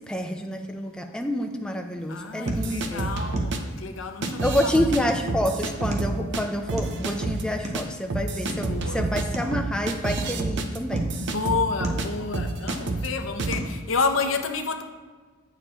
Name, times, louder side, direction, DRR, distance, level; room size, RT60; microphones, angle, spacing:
voice 1, 0.1-3.1 4.4-11.1, left 1 dB, 5° left, 0.6 m, -28 dB
sound 1, 2.0-14.0, right 1 dB, 35° right, 0.9 m, -39 dB
voice 2, 2.1-5.1 8.5-9.1 11.2-14.8, left 4 dB, 75° left, 0.7 m, -30 dB
sound 2, 2.5-3.6 4.2-5.0 5.3-6.4 6.7-7.4 7.7-7.8 8.1-12.1 12.3-13.1 13.4-13.6, right 3 dB, 60° right, 0.6 m, -28 dB
8.4 x 6.7 x 3.0 m
head